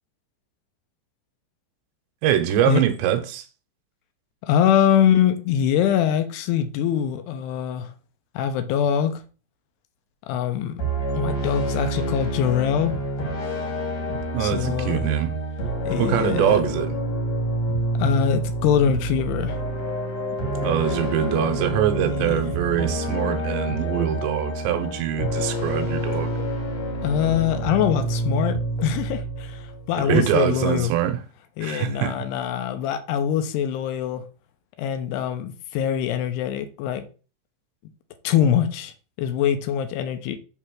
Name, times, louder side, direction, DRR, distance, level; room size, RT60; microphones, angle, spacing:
voice 1, 2.2-3.4 14.3-15.3 16.0-16.9 20.6-26.3 30.0-31.2 31.6-32.2, right 11 dB, 80° right, 2.8 m, -23 dB
voice 2, 4.4-7.9 8.4-9.2 10.2-10.8 11.1-12.9 14.4-15.1 15.8-16.6 18.0-19.6 22.1-22.5 27.0-30.9 31.6-34.2 34.8-37.0 38.2-40.4, left 9 dB, 80° left, 2.6 m, -23 dB
sound 1, 10.8-30.0, right 1 dB, 50° left, 2.1 m, -28 dB
7.3 x 3.4 x 6.2 m
omnidirectional pair, 5.4 m